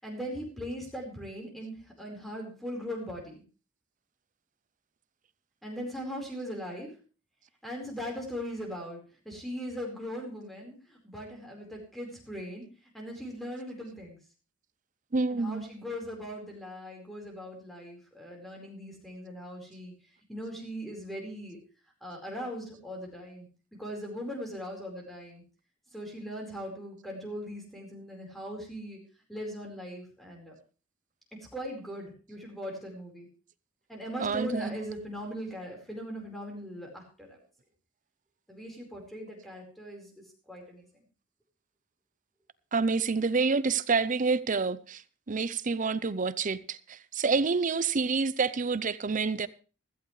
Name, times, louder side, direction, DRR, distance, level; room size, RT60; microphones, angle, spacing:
voice 1, 0.0-3.4 5.6-6.9 7.6-9.0 9.2-12.7 12.9-14.2 15.3-19.9 20.3-21.6 22.0-23.5 23.8-25.4 25.9-29.0 29.3-30.5 31.5-33.3 33.9-37.4 38.5-40.1 40.5-40.9, equal, ahead, 4.5 m, -39 dB
voice 2, 15.1-15.7 34.2-34.8 42.7-45.0 45.3-49.5, right 4 dB, 40° right, 0.6 m, -28 dB
16.0 x 14.0 x 3.2 m
head